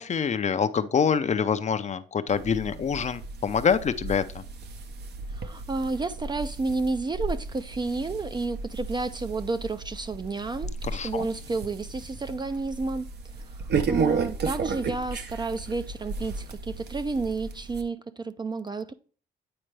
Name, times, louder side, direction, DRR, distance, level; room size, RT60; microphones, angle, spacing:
voice 1, 0.0-4.4 10.9-11.3, left 6 dB, 35° left, 0.5 m, -26 dB
sound 1, 2.3-17.8, right 4 dB, 55° right, 0.7 m, -34 dB
voice 2, 5.3-13.1 13.9-18.9, right 3 dB, 20° right, 0.4 m, -31 dB
8.8 x 4.3 x 3.2 m
cardioid pair, 90°, 20 cm